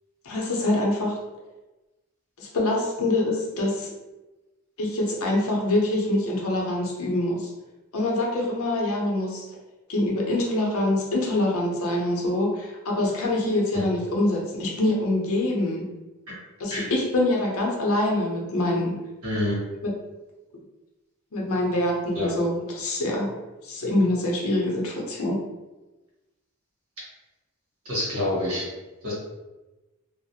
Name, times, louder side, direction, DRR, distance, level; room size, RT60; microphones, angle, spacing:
voice 1, 0.2-1.2 2.4-3.9 4.8-7.5 7.9-9.5 9.9-15.9 16.6-19.0 19.8-19.9 21.3-23.3 23.6-25.4, left 1 dB, 70° left, -2 dB, 0.6 m, -25 dB
voice 2, 19.2-19.6 22.1-22.3 27.8-28.6 29.0-29.1, left 1 dB, 75° right, -6 dB, 1.1 m, -26 dB
2.3 x 2.0 x 2.7 m, 1.1 s
head